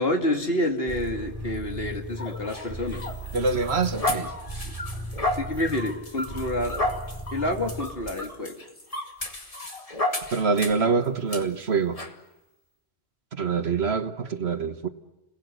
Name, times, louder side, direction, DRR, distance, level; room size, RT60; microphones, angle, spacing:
voice 1, 0.0-3.0 4.6-4.7 5.4-6.8 7.3-8.5, left 1 dB, 55° left, 3.1 m, -28 dB
sound 1, 0.9-8.1, right 1 dB, 15° left, 4.7 m, -37 dB
sound 2, 2.2-10.9 11.3-11.4 12.0-12.1, left 1 dB, 30° left, 2.2 m, -32 dB
voice 2, 3.3-4.3 10.3-12.0 13.3-14.9, right 5 dB, 65° right, 1.6 m, -25 dB
30.0 x 21.5 x 8.1 m
omnidirectional pair, 1.2 m